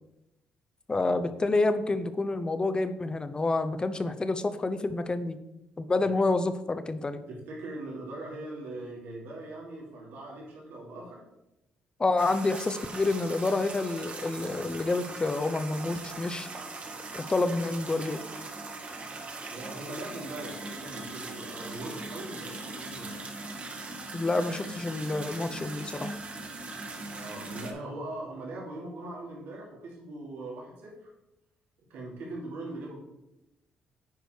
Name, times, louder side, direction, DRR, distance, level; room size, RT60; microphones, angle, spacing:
voice 1, 0.9-5.4 5.8-7.2 12.0-16.5 17.1-18.2 24.1-26.1, left 2 dB, 25° left, 11 dB, 0.8 m, -28 dB
voice 2, 7.3-11.2 19.5-23.2 27.1-31.1 31.9-33.0, right 2 dB, 80° right, -4 dB, 3.1 m, -41 dB
sound 1, 12.2-27.7, right 3 dB, 40° right, 1.5 m, -40 dB
9.5 x 5.1 x 4.6 m, 0.91 s
cardioid pair, 80°, 3 cm